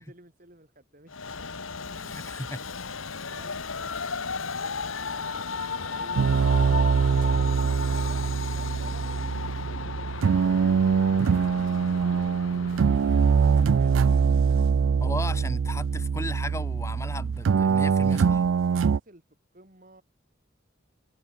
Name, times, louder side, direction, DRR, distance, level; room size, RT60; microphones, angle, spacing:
voice 1, 0.0-1.4 1.8-2.3 3.2-7.2 7.8-10.7 11.3-11.8 12.5-13.4 13.6-14.0 18.6-19.2 19.5-20.0, right 2 dB, 40° right, 3.6 m, -53 dB
Train, 1.1-14.6, left 4 dB, 90° left, 1.8 m, -35 dB
voice 2, 2.0-2.6 15.0-18.4, left 2 dB, 15° left, 2.8 m, -36 dB
sound 1, 6.2-19.0, right 6 dB, 80° right, 0.4 m, -23 dB
head